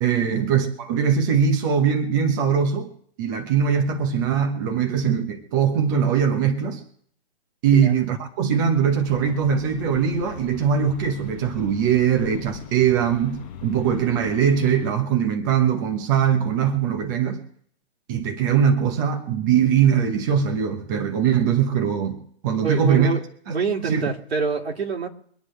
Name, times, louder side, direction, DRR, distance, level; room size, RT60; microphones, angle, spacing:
voice 1, 0.0-2.9 3.2-6.8 7.6-17.4 18.1-22.2 22.4-23.1 23.8-24.0, right 7 dB, 20° right, 4 dB, 1.0 m, -21 dB
sound 1, 9.0-14.9, left 8 dB, 30° left, 5.1 m, -39 dB
voice 2, 22.6-23.2 23.5-25.1, right 5 dB, 80° right, 1 dB, 2.7 m, -26 dB
25.0 x 9.8 x 3.3 m, 0.62 s
hypercardioid pair, 165°, 31 cm